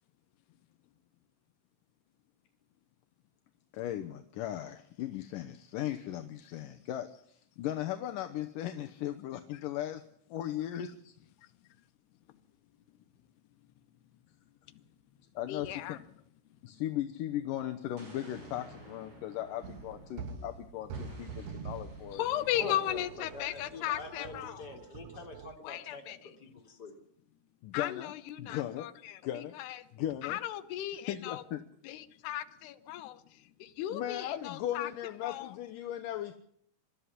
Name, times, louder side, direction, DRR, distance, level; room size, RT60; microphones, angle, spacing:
voice 1, 3.7-10.0 10.3-11.1 15.4-16.0 16.6-22.3 27.6-28.1 28.4-28.9 29.2-29.6 29.9-30.4 31.1-31.6 33.9-36.3, left 12 dB, 70° left, 7 dB, 2.4 m, -37 dB
voice 2, 15.5-16.0 16.7-16.8 22.1-24.7 25.6-26.3 27.7-29.8 30.2-31.4 31.8-34.9 35.2-35.6, left 13 dB, 90° left, 11 dB, 3.1 m, -37 dB
Explosion, 18.0-20.4 20.9-23.5, right 1 dB, 35° right, 6.7 m, -54 dB
sound 1, 19.6-25.5, right 5 dB, 60° right, 1.9 m, -45 dB
voice 3, 22.6-26.0 26.4-27.0, left 3 dB, 25° left, 2 dB, 3.8 m, -45 dB
24.0 x 13.0 x 9.8 m, 0.67 s
omnidirectional pair, 4.6 m